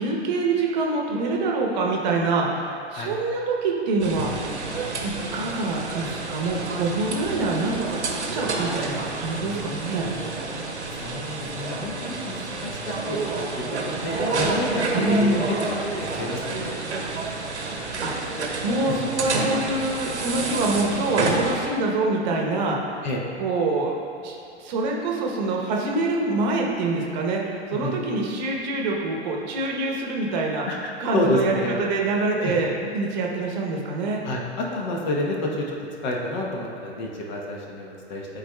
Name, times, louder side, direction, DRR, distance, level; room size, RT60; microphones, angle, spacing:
voice 1, 0.0-4.4 5.0-10.1 14.9-15.4 18.0-18.1 18.6-22.9 23.4-24.0 24.2-30.7 31.0-34.2, right 3 dB, 40° right, -1 dB, 0.9 m, -25 dB
sound 1, 4.0-21.7, right 3 dB, 75° right, 0.9 m, -29 dB
voice 2, 10.9-12.8 13.1-14.8 15.1-16.8 18.9-19.0 23.0-23.2 27.7-27.9 30.7-31.8 32.4-32.6 34.2-34.4 34.7-35.8 36.0-38.4, left 2 dB, 40° left, -1 dB, 1.0 m, -29 dB
11.0 x 4.0 x 2.3 m, 2.7 s
figure-of-eight pair, 110°, 34 cm